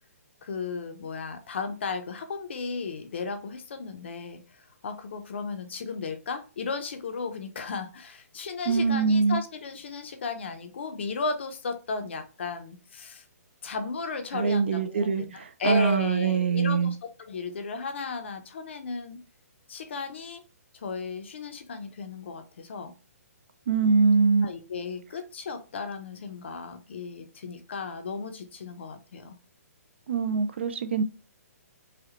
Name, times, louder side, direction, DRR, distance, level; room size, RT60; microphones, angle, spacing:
voice 1, 0.4-13.2 13.6-19.2 19.7-20.4 20.7-22.9 24.4-29.4, left 4 dB, 45° left, 0.6 m, -35 dB
voice 2, 8.7-9.4 14.3-17.0 23.7-24.5 30.1-31.0, right 5 dB, 45° right, 0.4 m, -23 dB
4.8 x 2.1 x 3.0 m
hypercardioid pair, 175°, 9 cm